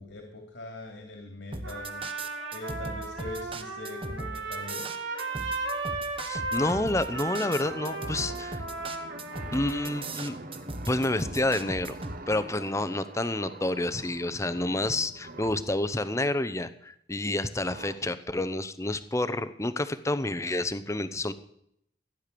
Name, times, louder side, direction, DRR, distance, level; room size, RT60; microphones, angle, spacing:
voice 1, 0.0-2.0 2.5-4.8, left 2 dB, 85° left, 3 dB, 2.9 m, -42 dB
sound 1, 1.5-12.2, right 2 dB, 30° right, 1.2 m, -38 dB
Trumpet, 1.6-10.1, right 2 dB, 90° right, 3.0 m, -36 dB
voice 2, 6.3-8.6 9.5-10.4 10.9-12.0 12.3-21.3, left 1 dB, 15° left, 14 dB, 0.8 m, -29 dB
sound 2, 7.1-15.7 17.7-17.9, right 2 dB, 50° right, 1.2 m, -44 dB
15.0 x 10.0 x 6.9 m, 0.73 s
head